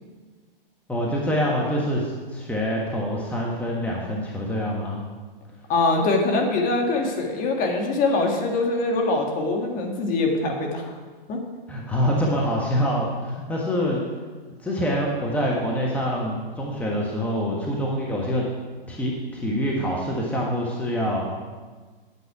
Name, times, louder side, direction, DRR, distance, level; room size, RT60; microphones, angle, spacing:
voice 1, 0.9-5.0 11.7-14.0 14.6-18.5 18.9-21.2, equal, 5° left, -3 dB, 1.3 m, -25 dB
voice 2, 5.7-10.8 11.3-11.4, left 3 dB, 30° left, 2 dB, 1.7 m, -23 dB
9.7 x 8.7 x 4.7 m, 1.4 s
hypercardioid pair, 125°, 29 cm